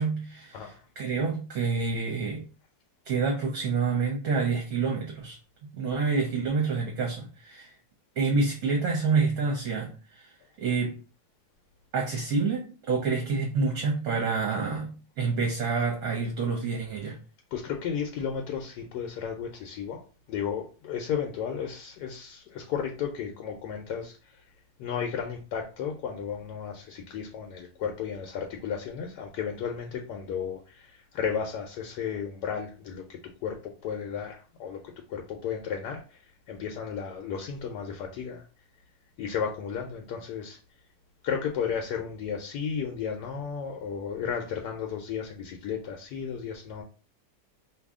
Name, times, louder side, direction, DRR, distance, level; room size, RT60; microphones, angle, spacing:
voice 1, 0.0-2.4 3.1-5.4 5.7-7.7 8.2-10.3 10.6-11.0 11.9-17.2, right 4 dB, 60° right, 1.0 m, -28 dB
voice 2, 17.5-24.4 24.8-36.2 36.5-38.5 39.2-40.6 41.2-46.8, left 7 dB, 75° left, 1.0 m, -34 dB
2.7 x 2.6 x 3.5 m
omnidirectional pair, 2.0 m